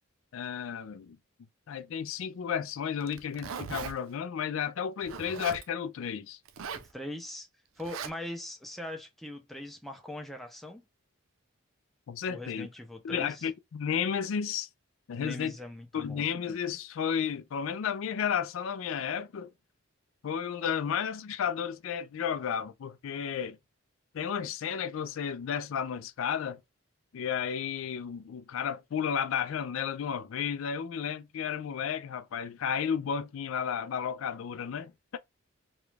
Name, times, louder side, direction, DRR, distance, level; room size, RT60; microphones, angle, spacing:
voice 1, 0.3-1.2 1.7-6.4 12.1-12.7 13.0-14.7 15.1-15.6 15.9-19.5 20.2-23.6 24.1-26.6 27.1-35.2, left 7 dB, 70° left, 0.4 m, -33 dB
Zipper (clothing), 3.0-3.9 5.0-5.6 6.5-6.9 7.8-8.1, right 6 dB, 70° right, 0.4 m, -39 dB
voice 2, 6.7-7.5 7.8-10.8 12.3-13.5 15.2-16.2, left 1 dB, ahead, 0.5 m, -41 dB
3.0 x 2.3 x 3.1 m
head